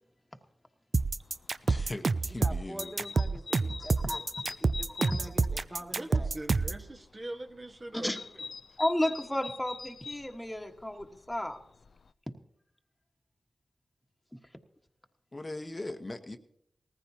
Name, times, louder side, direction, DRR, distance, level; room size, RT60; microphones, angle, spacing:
sound 1, 0.9-6.8, right 4 dB, 55° right, 0.4 m, -28 dB
sound 2, 1.2-12.1, left 4 dB, 70° left, 0.4 m, -45 dB
voice 1, 1.6-2.9 15.3-16.4, left 2 dB, 35° left, 7 dB, 1.0 m, -40 dB
voice 2, 2.4-4.2 4.6-6.3, right 1 dB, 15° right, 3 dB, 2.2 m, -45 dB
voice 3, 5.9-8.2, right 1 dB, 35° right, 5 dB, 1.5 m, -42 dB
voice 4, 8.8-11.6, left 1 dB, 15° left, 4 dB, 1.4 m, -32 dB
19.0 x 14.5 x 2.8 m, 0.72 s
cardioid pair, 45°, 0 cm